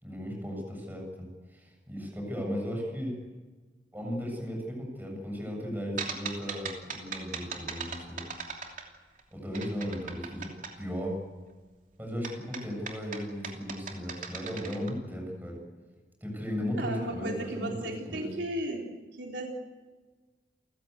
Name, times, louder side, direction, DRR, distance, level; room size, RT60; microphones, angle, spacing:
voice 1, 0.0-3.1 3.9-8.2 9.3-10.5 10.8-11.2 12.0-15.6 16.2-18.3, equal, 10° right, 1 dB, 7.4 m, -36 dB
sound 1, 6.0-9.2 9.5-10.7 12.2-14.9, right 5 dB, 45° right, 2.9 m, -38 dB
voice 2, 16.8-18.9 19.2-19.5, right 1 dB, 80° right, 1 dB, 3.8 m, -35 dB
29.0 x 15.5 x 8.2 m, 1.3 s
head